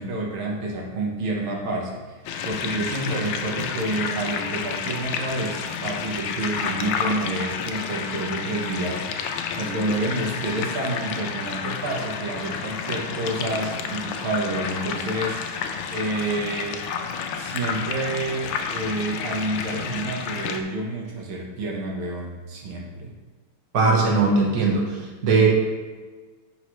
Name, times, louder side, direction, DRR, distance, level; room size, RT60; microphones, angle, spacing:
voice 1, 0.0-2.0 2.4-9.1 9.6-15.4 15.9-16.8 17.4-23.1, right 2 dB, 85° right, -1 dB, 2.0 m, -29 dB
sound 1, 2.3-20.6, left 6 dB, 90° left, 1.4 m, -30 dB
voice 2, 23.7-24.8 25.2-25.5, right 4 dB, 50° right, -2 dB, 1.6 m, -18 dB
10.0 x 4.8 x 3.1 m, 1.3 s
omnidirectional pair, 2.2 m